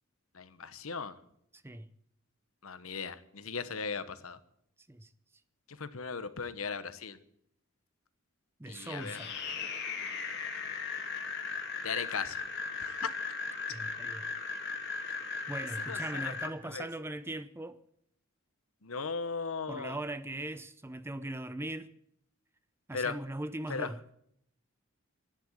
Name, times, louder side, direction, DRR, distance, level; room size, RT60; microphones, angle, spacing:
voice 1, 0.3-1.2 2.6-4.4 5.7-7.2 8.7-9.2 11.8-12.4 12.8-13.1 15.9-16.3 16.6-16.9 18.8-20.0 22.9-23.2 23.7-23.9, left 5 dB, 80° left, 1.1 m, -37 dB
voice 2, 1.5-1.9 4.9-5.1 8.6-9.4 13.7-14.3 14.9-15.2 15.5-17.8 19.7-21.9 22.9-24.0, right 1 dB, 10° right, 0.6 m, -40 dB
sound 1, 8.7-16.5, left 5 dB, 50° left, 2.4 m, -37 dB
12.0 x 10.5 x 9.7 m
head